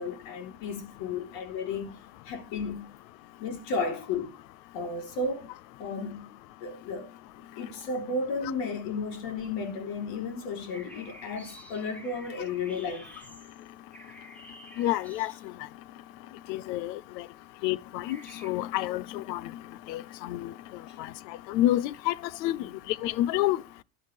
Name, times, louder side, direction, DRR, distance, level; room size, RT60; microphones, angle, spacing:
voice 1, 0.0-2.9 3.4-4.4 4.7-5.5 5.8-6.3 6.6-7.1 7.4-13.1 20.9-21.0 22.6-22.8, left 3 dB, 60° left, 4.0 m, -34 dB
sound 1, 10.7-15.7 18.1-18.5, right 1 dB, 5° left, 2.0 m, -50 dB
voice 2, 14.8-15.3 16.5-17.0 17.6-18.2 18.4-19.4 19.9-20.5 21.5-22.1 22.4-22.6 23.0-23.6, left 14 dB, 85° left, 0.7 m, -28 dB
12.0 x 11.5 x 3.4 m
supercardioid pair, 105°, 49 cm